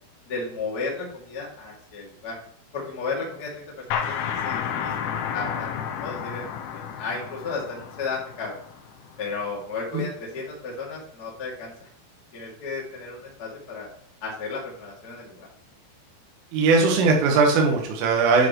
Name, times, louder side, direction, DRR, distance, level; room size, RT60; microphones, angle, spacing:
voice 1, 0.2-2.4 2.7-4.2 4.4-8.6 9.2-11.9 12.3-13.9 14.2-15.5, left 4 dB, 35° left, -4 dB, 1.5 m, -34 dB
sound 1, 3.9-9.3, left 8 dB, 80° left, 3.3 m, -31 dB
voice 2, 16.5-18.5, right 4 dB, 80° right, 0 dB, 3.9 m, -19 dB
10.5 x 6.2 x 3.1 m, 0.66 s
omnidirectional pair, 5.8 m